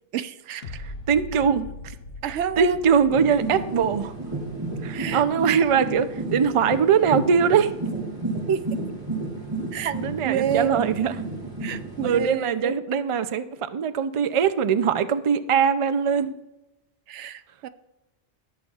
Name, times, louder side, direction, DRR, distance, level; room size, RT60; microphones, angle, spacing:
voice 1, 0.1-0.6 1.3-1.4 2.2-2.8 4.9-5.2 8.5-8.6 9.7-9.9 10.2-10.8 11.6-12.7 17.1-17.7, right 9 dB, 75° right, 13 dB, 0.9 m, -29 dB
sound 1, 0.6-7.7 8.1-8.2, left 2 dB, 55° left, 1.0 m, -43 dB
voice 2, 1.1-1.9 2.2-4.1 4.8-7.7 9.8-11.2 12.0-16.3, right 7 dB, 60° right, 11 dB, 0.3 m, -22 dB
sound 2, 3.1-12.3, right 2 dB, 20° right, 2.7 m, -32 dB
18.0 x 6.9 x 2.4 m, 0.97 s
omnidirectional pair, 1.2 m